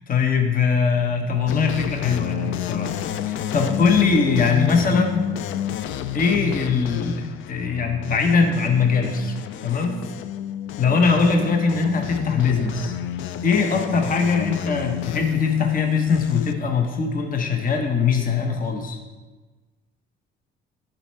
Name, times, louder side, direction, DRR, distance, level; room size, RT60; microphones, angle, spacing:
voice 1, 0.0-2.9 3.2-5.3 6.1-7.2 7.5-9.3 9.6-10.0 10.8-12.9 13.4-19.0, left 5 dB, 40° left, 3 dB, 0.9 m, -21 dB
sound 1, 1.5-16.5, left 10 dB, 70° left, 0.4 m, -29 dB
10.5 x 4.4 x 3.3 m, 1.3 s
cardioid pair, 85°, 21 cm